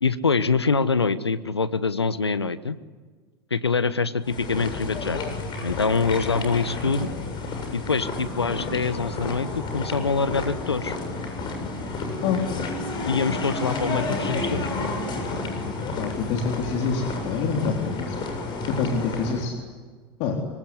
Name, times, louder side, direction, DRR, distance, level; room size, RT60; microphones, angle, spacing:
voice 1, 0.0-2.8 3.5-5.4 5.6-7.1 7.7-11.0 13.1-14.7, left 4 dB, 85° left, 15 dB, 1.2 m, -25 dB
sound 1, 4.2-19.5, left 3 dB, 35° left, 7.6 m, -31 dB
voice 2, 15.9-18.2 18.7-19.5 20.2-20.4, left 5 dB, 50° left, 2 dB, 4.0 m, -26 dB
25.5 x 24.0 x 9.8 m, 1.5 s
figure-of-eight pair, 80°, 13 cm